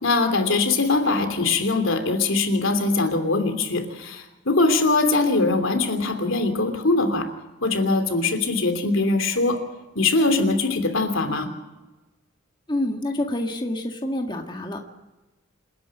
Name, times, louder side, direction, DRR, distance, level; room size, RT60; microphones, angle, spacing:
voice 1, 0.0-7.3 7.6-9.6 9.9-11.5, left 3 dB, 80° left, 7 dB, 3.0 m, -22 dB
voice 2, 12.7-14.8, left 1 dB, 20° left, 2 dB, 1.8 m, -27 dB
28.0 x 10.5 x 8.8 m, 1.1 s
head